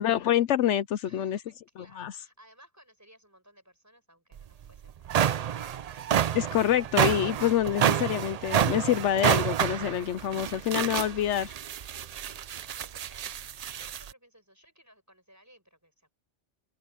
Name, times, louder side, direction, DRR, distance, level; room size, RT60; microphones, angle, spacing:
voice 1, 0.0-1.4 2.0-2.1 6.3-11.5, left 11 dB, 75° left, 0.9 m, -26 dB
voice 2, 1.0-5.3 12.7-16.1, equal, 15° right, 6.3 m, -59 dB
sound 1, 4.4-4.5 4.9-14.1, right 9 dB, 75° right, 0.3 m, -28 dB
open air
omnidirectional pair, 1.2 m